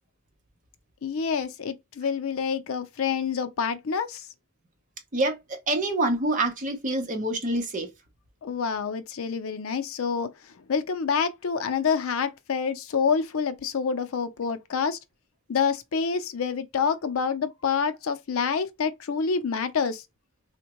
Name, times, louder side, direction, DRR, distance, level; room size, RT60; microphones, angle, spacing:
voice 1, 1.0-4.2 8.4-10.3 10.7-15.0 15.5-20.0, left 6 dB, 70° left, 0.5 m, -27 dB
voice 2, 5.1-7.9, right 2 dB, 35° right, 0.8 m, -26 dB
3.5 x 2.2 x 2.9 m
head